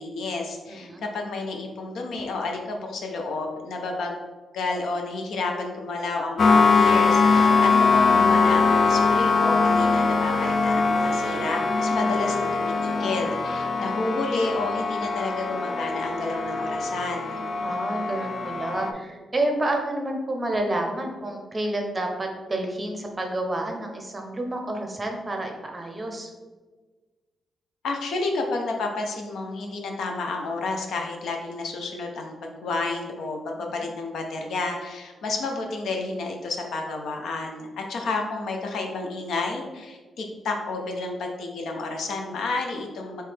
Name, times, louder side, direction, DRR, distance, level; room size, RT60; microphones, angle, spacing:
voice 1, 0.0-4.1 4.5-17.4 27.8-43.2, left 3 dB, 75° left, 2 dB, 0.7 m, -30 dB
voice 2, 0.7-1.1 17.6-26.3, right 1 dB, 20° right, 2 dB, 0.6 m, -29 dB
sound 1, 6.4-18.9, left 4 dB, 45° left, 0.4 m, -22 dB
4.7 x 3.2 x 3.4 m, 1.3 s
wide cardioid pair, 155°, 0 cm